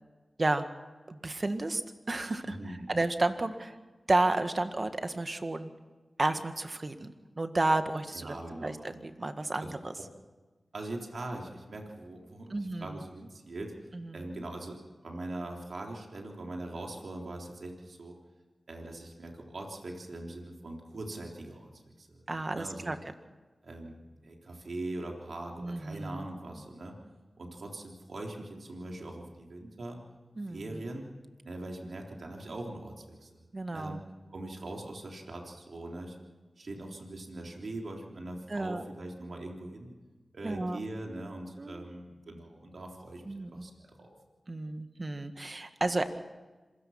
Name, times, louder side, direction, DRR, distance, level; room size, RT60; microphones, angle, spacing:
voice 1, 1.1-1.8 2.1-3.8 4.1-5.7 6.2-9.9 12.5-13.0 13.9-14.3 22.3-23.0 25.6-26.3 30.4-30.8 33.5-34.0 38.5-38.8 40.4-40.8 41.6-41.8 43.3-43.7 44.5-46.0, right 2 dB, 45° right, 8 dB, 1.7 m, -32 dB
voice 2, 2.4-2.9 8.1-8.8 9.6-9.7 10.0-10.1 10.7-13.7 14.1-18.2 18.7-22.2 22.5-22.9 23.6-24.0 24.2-27.0 27.4-30.0 30.5-31.1 31.4-33.4 33.7-34.0 34.3-36.2 36.6-39.9 40.3-44.1, right 2 dB, 75° right, 1 dB, 3.7 m, -42 dB
26.5 x 17.0 x 5.9 m, 1.3 s
cardioid pair, 40°, 0 cm